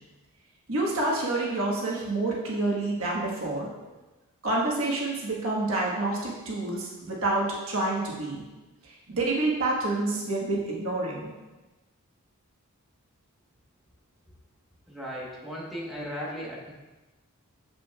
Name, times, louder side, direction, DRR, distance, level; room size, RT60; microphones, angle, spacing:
voice 1, 0.7-3.7 4.4-8.4 8.8-11.3, right 2 dB, 70° right, -4 dB, 1.3 m, -28 dB
voice 2, 14.9-16.7, equal, ahead, -6 dB, 1.1 m, -36 dB
7.4 x 5.9 x 2.3 m, 1.1 s
head